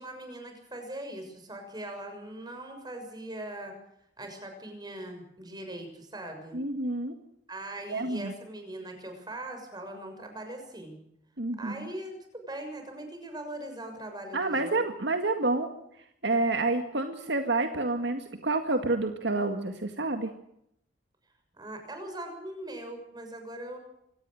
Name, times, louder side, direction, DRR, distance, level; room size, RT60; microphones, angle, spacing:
voice 1, 0.0-3.7 4.2-6.6 7.5-11.0 11.6-14.8 21.6-23.8, right 1 dB, 20° right, 5 dB, 6.7 m, -40 dB
voice 2, 6.5-7.2 7.9-8.3 11.4-11.9 14.3-15.7 16.2-20.3, right 2 dB, 65° right, 6 dB, 2.0 m, -28 dB
26.0 x 17.5 x 6.6 m, 0.76 s
head